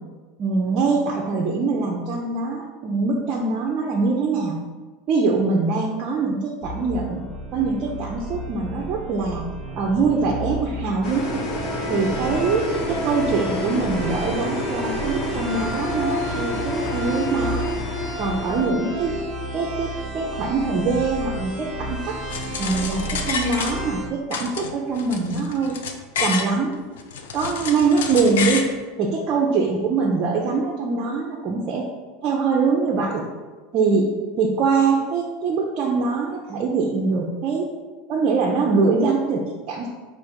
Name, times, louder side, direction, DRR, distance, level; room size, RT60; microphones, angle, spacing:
voice 1, 0.4-4.6 5.1-7.2 7.5-9.5 9.8-11.4 11.9-17.7 18.2-19.2 19.5-22.2 22.6-25.7 26.2-26.8 27.3-28.7 29.0-31.9 32.2-33.2 33.7-34.1 34.4-37.7 38.1-39.9, right 4 dB, 45° right, -1 dB, 0.5 m, -23 dB
sound 1, 6.6-24.1, equal, 5° right, 1.0 m, -31 dB
sound 2, 11.0-18.7, left 1 dB, 45° left, 0.9 m, -29 dB
sound 3, 22.3-24.0 24.3-26.5 27.0-28.7, left 6 dB, 75° left, 0.4 m, -29 dB
3.5 x 2.6 x 4.4 m, 1.3 s
hypercardioid pair, 95°, 0 cm